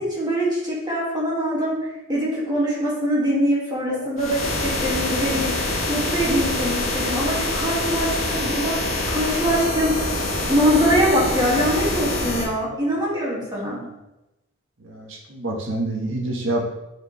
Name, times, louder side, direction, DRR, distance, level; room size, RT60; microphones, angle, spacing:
voice 1, 0.0-1.8 2.1-10.1 10.5-13.8, equal, 20° right, -6 dB, 2.4 m, -23 dB
sound 1, 4.2-12.5, left 1 dB, 85° left, 1.9 m, -25 dB
voice 2, 13.1-13.4 13.7-13.9 14.8-16.6, right 2 dB, 70° right, -1 dB, 1.5 m, -28 dB
7.7 x 5.1 x 3.4 m, 0.93 s
head